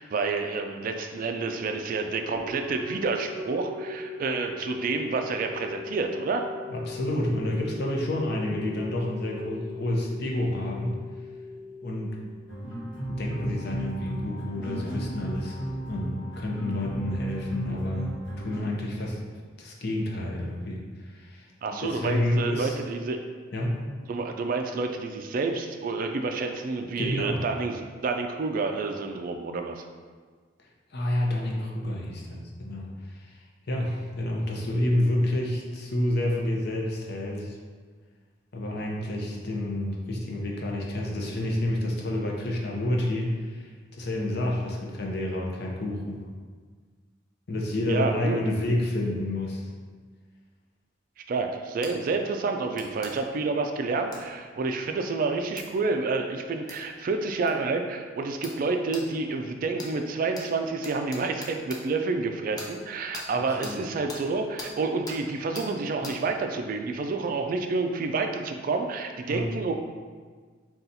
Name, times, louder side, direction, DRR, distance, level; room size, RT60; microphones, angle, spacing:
voice 1, 0.0-6.5 21.6-23.2 24.1-29.8 47.9-48.4 51.3-69.7, right 3 dB, 45° right, 5 dB, 0.3 m, -29 dB
sound 1, 2.3-12.9, left 4 dB, 20° right, 0.7 m, -40 dB
voice 2, 6.7-10.9 11.8-12.2 12.8-15.6 15.9-19.2 19.6-21.5 21.8-22.7 23.5-23.8 27.0-27.4 30.9-37.6 38.5-46.2 47.5-49.7 63.3-63.8 69.3-69.4, left 1 dB, 60° left, -1 dB, 0.7 m, -29 dB
sound 2, 12.5-18.6, right 1 dB, 85° left, 1.0 m, -35 dB
sound 3, 51.8-51.9 52.7-53.1 54.1-54.2 55.6-55.7 56.7-56.8 57.5-57.6 58.4-58.6 58.9-59.0 59.8-59.9 60.3-60.5 60.8-61.8 62.6-62.7 63.1-63.3 63.6-63.8 64.1-64.2 64.6-64.7 65.1-65.2 65.5-65.7 66.0-66.2, left 2 dB, 20° left, 0.5 m, -40 dB
3.9 x 2.3 x 4.1 m, 1.5 s
head